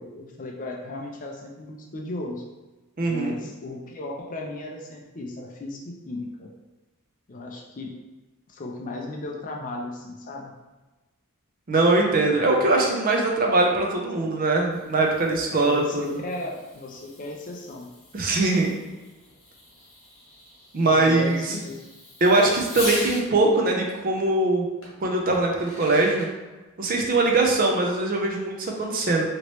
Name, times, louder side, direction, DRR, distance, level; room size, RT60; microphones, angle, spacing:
voice 1, 0.0-2.5 3.0-6.5 7.3-8.0 8.5-10.5 15.5-17.9 20.8-21.8, left 2 dB, 35° left, 0 dB, 0.4 m, -35 dB
voice 2, 3.0-3.3 11.7-16.2 18.1-18.7 20.7-21.5 22.2-24.7 25.0-26.3 26.8-29.2, right 2 dB, 40° right, 0 dB, 0.5 m, -22 dB
Fireworks, 14.7-23.3 24.8-24.9 25.4-26.3, left 1 dB, 65° left, 1.2 m, -40 dB
3.0 x 2.9 x 2.9 m, 1.2 s
head